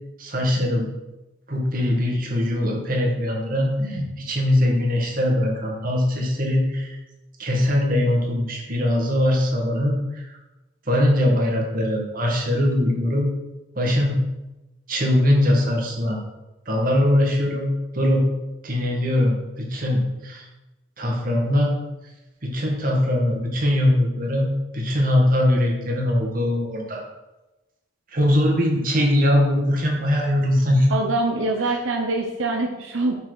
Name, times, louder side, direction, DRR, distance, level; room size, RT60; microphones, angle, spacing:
voice 1, 0.2-0.9 1.5-7.0 7.4-10.4 10.9-13.3 13.8-14.2 14.9-16.2 16.7-17.7 17.9-18.2 18.6-20.5 21.0-21.7 22.4-24.5 24.7-27.0 28.1-30.9, left 1 dB, 45° right, 0 dB, 1.8 m, -21 dB
voice 2, 30.9-33.1, right 2 dB, 80° right, 1 dB, 0.9 m, -24 dB
6.0 x 5.9 x 6.2 m, 1.0 s
head